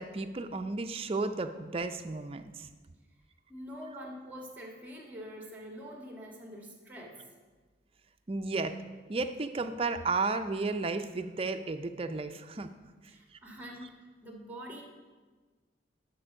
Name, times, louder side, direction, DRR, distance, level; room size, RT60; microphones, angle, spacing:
voice 1, 0.0-2.7 8.3-8.8 9.1-12.7, right 3 dB, 30° right, 8 dB, 0.4 m, -33 dB
voice 2, 3.5-7.2 13.1-13.9 14.2-14.8, equal, 10° right, 0 dB, 1.6 m, -45 dB
11.0 x 4.4 x 6.2 m, 1.4 s
head